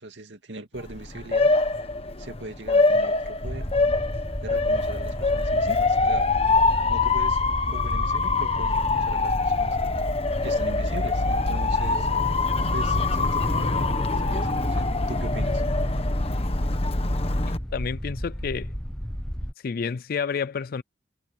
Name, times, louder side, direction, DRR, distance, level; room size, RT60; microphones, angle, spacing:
voice 1, 0.0-1.5 2.2-3.7 4.4-6.3 6.9-9.8 10.4-12.1 12.7-15.6, right 2 dB, 75° right, 2.4 m, -40 dB
Motor vehicle (road) / Siren, 0.8-17.6, left 3 dB, 35° left, 1.2 m, -24 dB
sound 1, 3.4-19.5, equal, 5° left, 0.7 m, -33 dB
voice 2, 17.7-18.7 19.6-20.8, left 6 dB, 55° left, 0.4 m, -29 dB
head